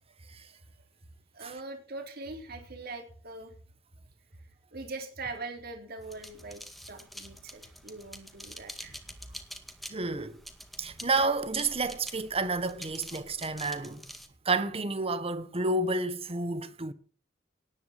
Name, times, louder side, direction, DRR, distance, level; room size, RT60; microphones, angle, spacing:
voice 1, 0.2-0.6 1.3-3.5 4.7-6.6 6.9-9.0, right 3 dB, 55° right, 3.5 m, -42 dB
sound 1, 6.0-14.3, equal, ahead, 2.0 m, -47 dB
voice 2, 9.9-10.4 10.8-14.0 14.4-16.9, right 3 dB, 30° right, 1.3 m, -30 dB
18.5 x 9.6 x 6.0 m
head